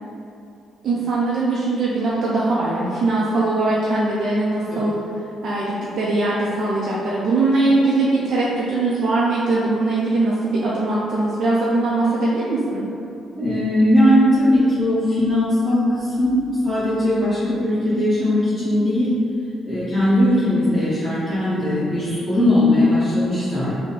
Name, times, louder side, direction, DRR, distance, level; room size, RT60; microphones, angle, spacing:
voice 1, 0.8-5.0 5.4-12.9, right 2 dB, 60° right, -7 dB, 0.5 m, -21 dB
voice 2, 13.4-16.4 16.6-19.1 19.6-23.7, left 1 dB, ahead, -14 dB, 1.2 m, -19 dB
3.6 x 2.2 x 4.0 m, 2.7 s
cardioid pair, 90°, 0 cm